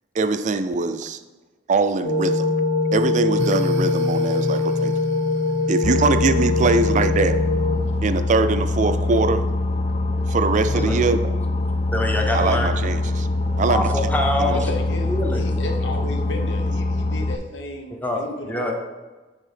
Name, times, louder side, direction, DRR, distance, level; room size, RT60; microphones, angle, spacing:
voice 1, 0.1-1.2 1.7-2.5 2.9-4.9 5.7-7.4 8.0-9.4 10.3-11.3 12.3-13.3 13.6-13.9 14.4-14.5, right 3 dB, 40° right, 11 dB, 0.4 m, -22 dB
sound 1, 2.0-7.7, left 3 dB, 60° left, 2.1 m, -22 dB
sound 2, 3.4-7.9, equal, 90° right, 0.7 m, -33 dB
Boat Water vehicle, 5.8-17.4, left 2 dB, 35° left, 0.3 m, -23 dB
voice 2, 11.9-12.7 13.7-14.6 15.0-15.5 18.0-18.7, left 1 dB, 10° left, 2 dB, 0.8 m, -24 dB
voice 3, 14.5-18.7, left 1 dB, 80° left, 4 dB, 0.9 m, -33 dB
7.5 x 3.6 x 5.1 m, 1.2 s
head